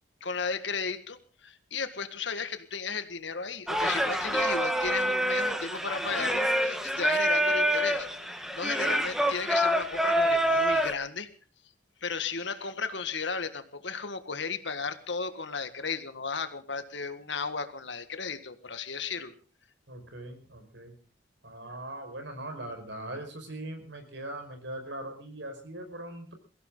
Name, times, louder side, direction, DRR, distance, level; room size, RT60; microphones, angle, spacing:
voice 1, 0.2-8.1 8.5-11.3 12.0-19.3, left 5 dB, 75° left, 10 dB, 1.8 m, -35 dB
Singing, 3.7-10.9, equal, ahead, 1.4 m, -26 dB
voice 2, 19.9-21.0 21.4-26.3, right 1 dB, 75° right, 6 dB, 5.2 m, -40 dB
23.0 x 15.5 x 3.9 m, 0.37 s
head